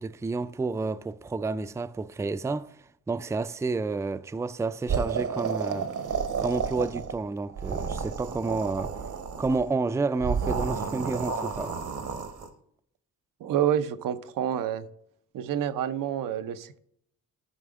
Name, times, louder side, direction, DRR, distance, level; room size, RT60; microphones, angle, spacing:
voice 1, 0.0-2.8 3.1-5.9 6.4-8.9 9.4-11.8, right 3 dB, 10° right, 0.3 m, -30 dB
sound 1, 4.9-7.2 7.5-9.6 10.2-12.5, right 6 dB, 65° right, 1.1 m, -31 dB
voice 2, 13.4-14.9 15.3-16.8, right 10 dB, 85° right, 0.7 m, -28 dB
13.0 x 5.0 x 3.6 m
cardioid pair, 80°, 32 cm